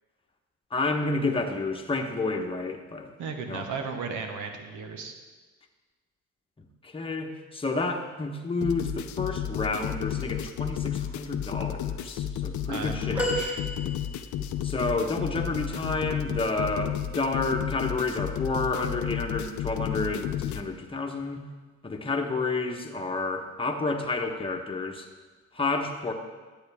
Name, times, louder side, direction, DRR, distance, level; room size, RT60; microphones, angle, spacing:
voice 1, 0.7-3.1 3.5-3.7 6.8-13.2 14.6-21.4 21.8-25.1 25.5-26.1, left 3 dB, 20° left, 2 dB, 1.1 m, -30 dB
voice 2, 3.2-5.1 12.7-13.6, right 5 dB, 80° right, 5 dB, 1.2 m, -35 dB
sound 1, 8.6-20.6, left 10 dB, 75° left, 0.6 m, -32 dB
sound 2, 13.2-14.6 17.0-17.2 18.5-18.6, equal, 5° right, 1.9 m, -32 dB
10.5 x 8.0 x 3.5 m, 1.3 s
cardioid pair, 90°, 30 cm